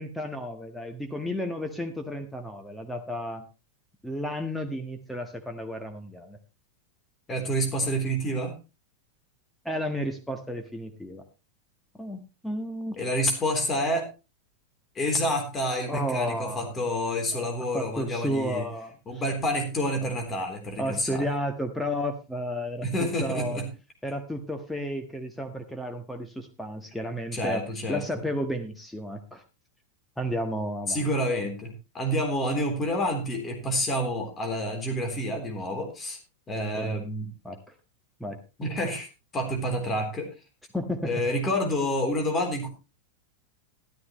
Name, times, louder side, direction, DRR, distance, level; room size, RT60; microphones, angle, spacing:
voice 1, 0.0-3.4 4.0-6.4 9.6-11.2 12.0-13.0 15.9-16.7 17.3-17.5 17.7-19.2 20.8-23.6 24.0-27.6 27.9-29.4 30.2-31.0 36.7-37.0 37.4-37.6 38.2-38.4 40.7-41.1, equal, 5° left, 5 dB, 1.5 m, -32 dB
voice 2, 7.3-8.5 13.0-14.1 15.0-18.7 19.1-21.3 22.8-23.7 27.3-28.0 30.9-36.2 36.5-37.3 38.6-39.1 39.3-40.3 41.0-42.7, equal, 20° left, 3 dB, 3.7 m, -28 dB
13.0 x 13.0 x 3.2 m, 0.29 s
figure-of-eight pair, 90°, 0 cm